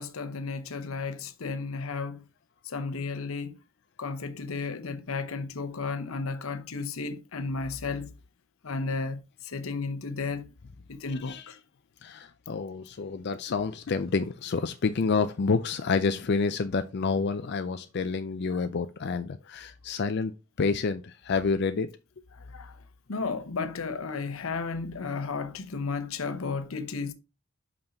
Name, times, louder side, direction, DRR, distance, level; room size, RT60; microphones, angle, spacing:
voice 1, 0.0-2.2 2.7-3.6 4.0-8.1 8.6-10.5 10.9-11.6 22.5-22.7 23.1-27.1, left 4 dB, 75° left, 0.8 m, -33 dB
voice 2, 11.1-11.5 12.0-21.9, left 4 dB, 50° left, 0.4 m, -29 dB
5.6 x 5.4 x 4.1 m
head